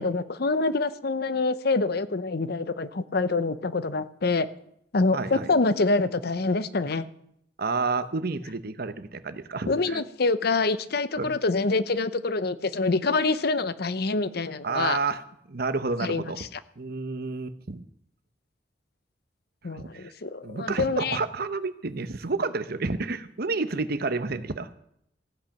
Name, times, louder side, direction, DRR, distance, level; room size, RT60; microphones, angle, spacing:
voice 1, 0.0-4.5 4.9-7.0 9.7-15.0 16.0-16.5 19.6-21.2, left 3 dB, 60° left, 14 dB, 0.8 m, -26 dB
voice 2, 5.1-5.5 7.6-10.0 11.2-11.3 14.6-15.2 15.5-16.4 16.8-17.8 19.7-20.1 20.4-24.7, right 3 dB, 55° right, 12 dB, 0.9 m, -30 dB
15.5 x 8.9 x 5.8 m, 0.73 s
head